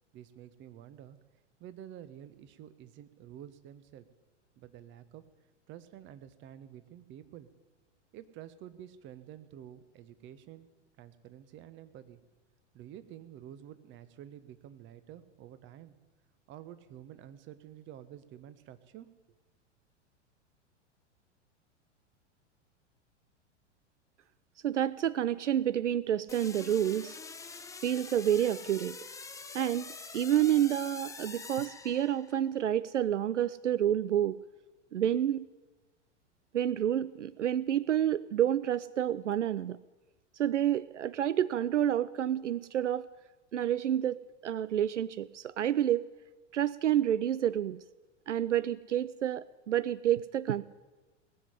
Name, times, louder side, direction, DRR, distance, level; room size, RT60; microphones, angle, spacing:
voice 1, 0.1-1.2 1.6-4.0 4.6-5.2 5.7-7.5 8.1-10.7 11.0-12.2 12.7-15.9 16.5-19.1, right 11 dB, 30° right, 13 dB, 1.1 m, -49 dB
voice 2, 24.6-27.2 27.8-29.0 29.5-34.4 34.9-35.5 36.5-39.8 40.4-43.1 43.5-46.1 46.5-47.8 48.3-50.6, right 11 dB, 80° right, 19 dB, 0.5 m, -29 dB
sound 1, 26.3-32.5, left 4 dB, 10° left, 1.0 m, -45 dB
19.0 x 7.7 x 9.9 m, 1.2 s
figure-of-eight pair, 95°, 36 cm